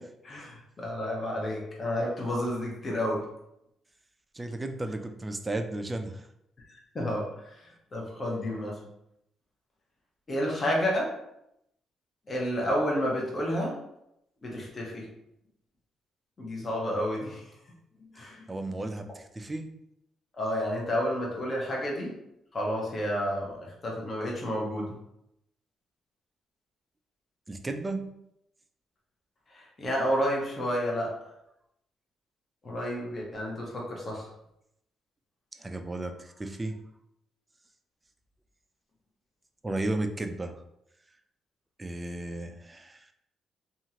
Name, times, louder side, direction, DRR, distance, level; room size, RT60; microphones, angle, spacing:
voice 1, 0.0-3.3 6.7-7.5 7.9-8.8 10.3-11.1 12.3-13.8 14.4-15.1 16.4-17.4 18.1-18.4 20.3-22.1 22.5-24.9 29.5-31.1 32.6-34.3, equal, 35° left, -2 dB, 0.9 m, -30 dB
voice 2, 4.3-6.3 18.5-19.7 27.5-28.1 35.6-36.8 39.6-40.6 41.8-43.1, right 2 dB, 20° right, 6 dB, 0.3 m, -34 dB
2.8 x 2.4 x 2.8 m, 0.80 s
cardioid pair, 90°, 0 cm